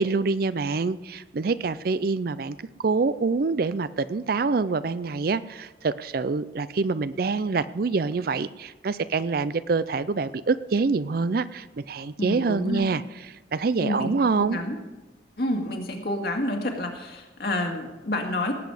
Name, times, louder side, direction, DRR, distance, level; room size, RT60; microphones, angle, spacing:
voice 1, 0.0-2.6 2.8-13.0 13.5-14.6, right 4 dB, 50° right, 15 dB, 0.4 m, -26 dB
voice 2, 12.2-12.9 13.8-14.8 15.4-18.5, left 1 dB, 55° left, 2 dB, 2.1 m, -29 dB
18.5 x 8.3 x 4.9 m, 1.2 s
head